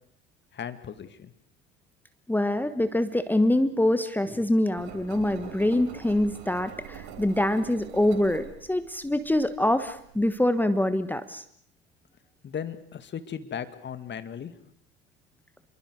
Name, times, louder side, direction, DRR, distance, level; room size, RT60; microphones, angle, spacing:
voice 1, 0.5-1.3 12.4-14.5, left 8 dB, 35° left, 11 dB, 2.3 m, -36 dB
voice 2, 2.3-11.4, left 1 dB, 5° left, 11 dB, 1.3 m, -25 dB
Engine, 4.8-10.2, right 7 dB, 60° right, 4.3 m, -45 dB
27.5 x 23.5 x 6.4 m, 0.63 s
hypercardioid pair, 70°, 32 cm